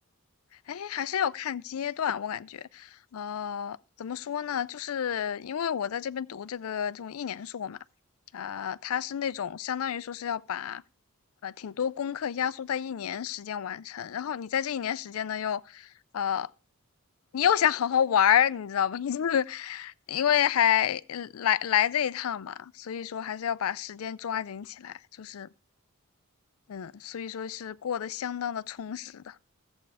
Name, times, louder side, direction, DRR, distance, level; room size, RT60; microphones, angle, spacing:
voice 1, 0.7-7.8 8.3-10.8 11.4-16.5 17.3-25.5 26.7-29.4, left 9 dB, 75° left, 0.4 m, -29 dB
14.0 x 8.0 x 3.4 m
head